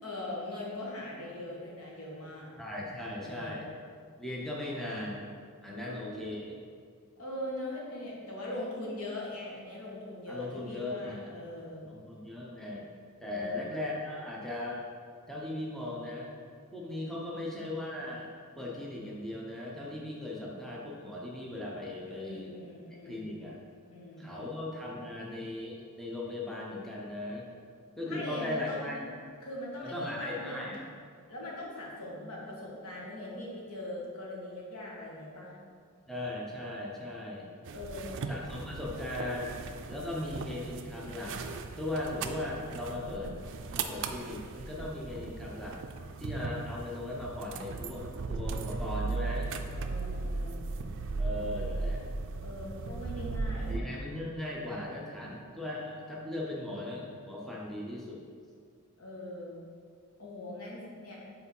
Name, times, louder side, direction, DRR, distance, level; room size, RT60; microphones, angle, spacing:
voice 1, 0.0-2.5 3.2-3.7 5.7-6.2 7.2-11.8 13.2-13.8 17.0-17.4 22.0-23.3 23.9-24.6 28.0-29.0 29.4-30.6 31.3-35.6 37.7-38.2 49.7-50.6 52.4-53.9 59.0-59.6 60.2-61.2, left 1 dB, 80° left, -4 dB, 1.4 m, -41 dB
voice 2, 2.6-3.7 4.2-5.2 5.6-6.5 10.3-11.4 11.9-12.9 13.2-14.8 15.3-16.3 16.7-18.3 18.6-22.5 23.1-23.6 24.2-27.5 28.0-29.0 29.8-30.8 36.1-37.5 38.3-39.6 39.9-41.4 41.8-43.3 43.7-45.8 46.2-49.5 51.2-52.1 53.7-58.2, left 1 dB, ahead, -4 dB, 0.7 m, -38 dB
sound 1, 37.7-53.8, right 3 dB, 60° right, 0.4 m, -37 dB
4.9 x 3.9 x 5.3 m, 2.1 s
head